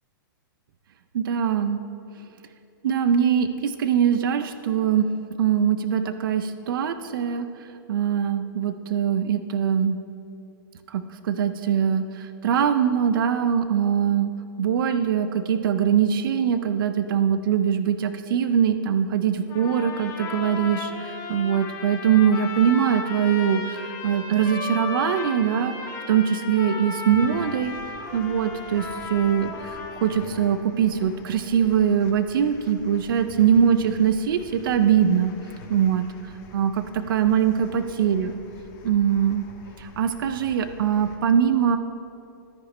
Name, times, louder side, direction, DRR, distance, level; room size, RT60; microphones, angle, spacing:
voice 1, 1.1-1.8 2.8-5.1 5.4-10.0 10.9-14.3 14.6-25.7 26.1-27.7 28.1-35.3 35.7-38.3 38.8-39.4 39.8-41.8, right 8 dB, 70° right, 10 dB, 0.5 m, -22 dB
sound 1, 19.5-30.5, left 4 dB, 25° left, 1.3 m, -35 dB
sound 2, 27.1-41.2, left 3 dB, 40° left, 1.3 m, -46 dB
13.5 x 5.0 x 4.3 m, 2.9 s
hypercardioid pair, 145°, 12 cm